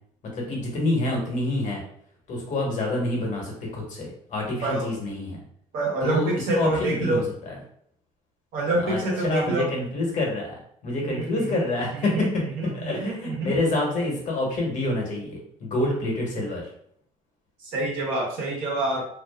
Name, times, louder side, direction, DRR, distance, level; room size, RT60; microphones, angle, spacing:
voice 1, 0.3-1.8 2.3-5.4 6.0-7.6 8.8-10.5 10.8-12.3 12.6-16.6, left 2 dB, 60° left, -1 dB, 1.1 m, -27 dB
voice 2, 5.7-7.2 8.5-9.7 10.9-11.6 11.9-13.6 17.6-19.0, right 2 dB, 75° right, -3 dB, 1.0 m, -27 dB
2.5 x 2.3 x 2.3 m, 0.65 s
supercardioid pair, 75°, 15 cm